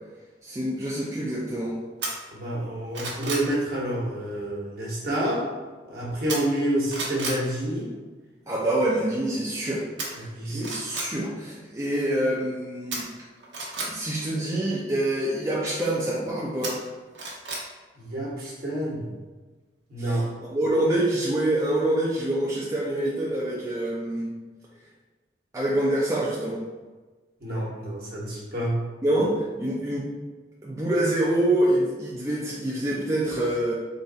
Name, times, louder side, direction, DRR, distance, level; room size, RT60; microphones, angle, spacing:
voice 1, 0.4-1.8 8.5-9.8 10.1-13.1 13.8-16.9 20.0-20.1 20.5-24.3 25.5-26.6 29.0-30.1 30.6-33.7, right 1 dB, 15° right, -6 dB, 0.5 m, -26 dB
sound 1, 2.0-2.1 2.6-3.5 6.3-6.6 6.9-7.4 10.0-10.1 10.6-11.1 12.9-13.9 16.6-17.6 18.0-18.1, right 3 dB, 85° right, 1.0 m, -32 dB
voice 2, 2.3-5.5 5.8-7.9 10.1-10.7 17.9-19.1 19.9-20.3 27.4-28.8, right 1 dB, 55° right, -5 dB, 1.3 m, -28 dB
3.9 x 2.5 x 3.9 m, 1.3 s
head